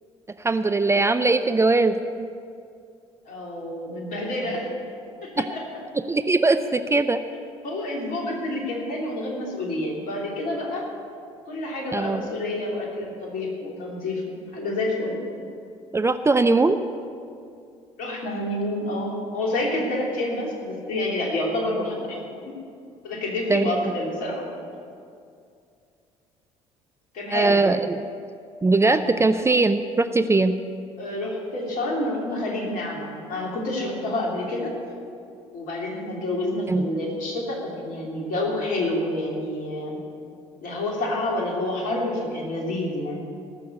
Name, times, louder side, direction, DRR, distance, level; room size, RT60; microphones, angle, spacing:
voice 1, 0.4-2.3 6.1-7.2 11.9-12.2 15.9-16.8 23.5-23.9 27.3-28.0 28.6-30.5 36.7-36.8, right 3 dB, 15° right, 10 dB, 0.6 m, -20 dB
voice 2, 3.3-4.7 5.2-5.8 7.6-10.9 11.5-14.2 14.5-15.2 18.0-22.2 22.5-22.6 23.0-24.4 27.1-27.6 31.0-34.7 35.5-40.0 40.6-43.2, left 1 dB, 60° left, -1 dB, 3.1 m, -28 dB
18.5 x 6.7 x 8.2 m, 2.4 s
figure-of-eight pair, 55°, 16 cm